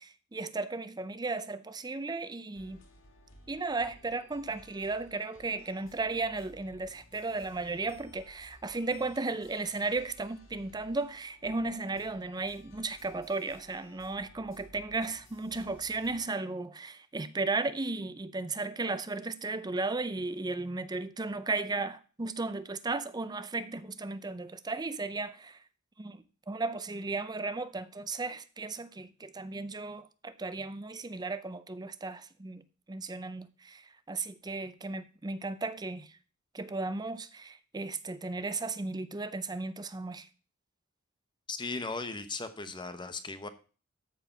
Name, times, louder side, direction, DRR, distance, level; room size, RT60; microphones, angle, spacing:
voice 1, 0.0-2.8 3.5-25.6 26.0-32.6 32.9-36.2 36.5-40.3, right 3 dB, 20° right, 0.5 m, -35 dB
sound 1, 2.5-16.2, left 1 dB, 75° left, 3.1 m, -57 dB
voice 2, 41.5-43.5, left 3 dB, 25° left, 0.9 m, -37 dB
13.0 x 4.8 x 5.7 m
head